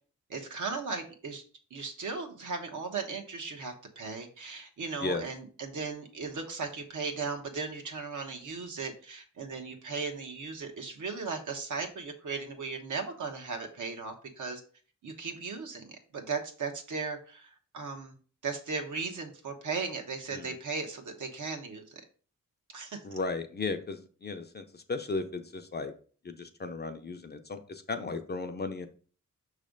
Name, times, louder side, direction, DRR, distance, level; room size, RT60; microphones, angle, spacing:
voice 1, 0.3-1.4 1.7-14.6 15.0-18.1 18.4-22.0 22.7-23.2, right 4 dB, 65° right, 4 dB, 1.2 m, -37 dB
voice 2, 23.0-25.9 26.2-28.9, left 3 dB, 30° left, 6 dB, 0.6 m, -35 dB
6.2 x 3.2 x 5.1 m, 0.41 s
wide cardioid pair, 135°, 33 cm